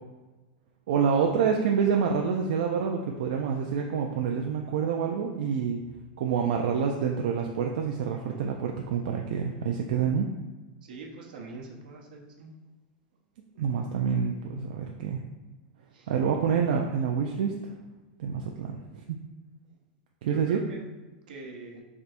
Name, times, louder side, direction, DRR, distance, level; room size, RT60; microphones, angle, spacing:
voice 1, 0.9-5.8 6.2-10.3 13.6-15.2 16.1-17.7 18.2-19.2 20.2-20.6, right 6 dB, 70° right, 1 dB, 0.4 m, -27 dB
voice 2, 10.8-12.5 15.9-16.1 16.4-16.6 20.2-20.8 21.3-21.8, right 3 dB, 85° right, 0 dB, 0.8 m, -43 dB
3.4 x 2.5 x 4.2 m, 1.2 s
supercardioid pair, 160°, 5 cm